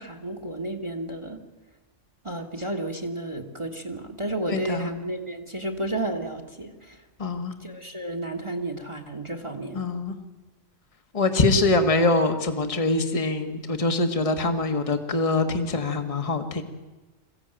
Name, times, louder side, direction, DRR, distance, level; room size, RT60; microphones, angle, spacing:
voice 1, 0.0-1.4 2.2-7.0 7.6-9.8, right 1 dB, 25° right, 6 dB, 1.6 m, -32 dB
voice 2, 4.5-4.9 7.2-7.6 9.7-10.2 11.1-16.6, left 3 dB, 25° left, 7 dB, 1.5 m, -24 dB
22.0 x 15.5 x 9.1 m, 1.2 s
omnidirectional pair, 1.3 m